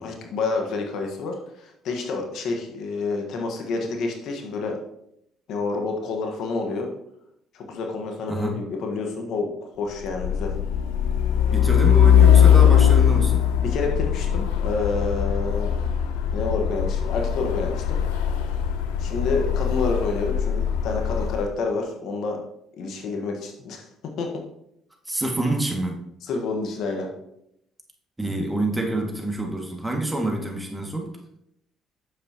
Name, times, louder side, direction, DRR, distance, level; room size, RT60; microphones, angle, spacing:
voice 1, 0.0-4.8 5.5-6.9 7.5-10.5 13.6-15.7 16.3-18.0 19.0-22.4 22.8-23.9 24.2-24.4 26.2-27.1, left 3 dB, 65° left, 3 dB, 1.3 m, -28 dB
Truck, 10.0-21.5, left 9 dB, 85° left, 0.6 m, -20 dB
voice 2, 11.5-13.4 25.1-26.0 28.2-31.1, right 2 dB, 15° right, 2 dB, 1.9 m, -27 dB
8.7 x 7.2 x 2.9 m, 0.77 s
hypercardioid pair, 60°, 0 cm